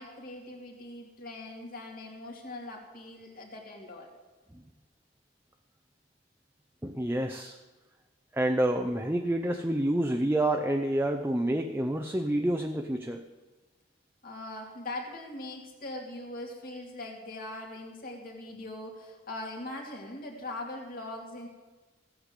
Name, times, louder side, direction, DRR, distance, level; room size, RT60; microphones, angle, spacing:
voice 1, 0.0-4.1 14.2-21.5, left 2 dB, 50° left, 1 dB, 2.5 m, -41 dB
voice 2, 6.8-7.6 8.3-13.2, right 1 dB, 10° right, 4 dB, 0.6 m, -28 dB
15.5 x 8.5 x 7.4 m, 1.2 s
head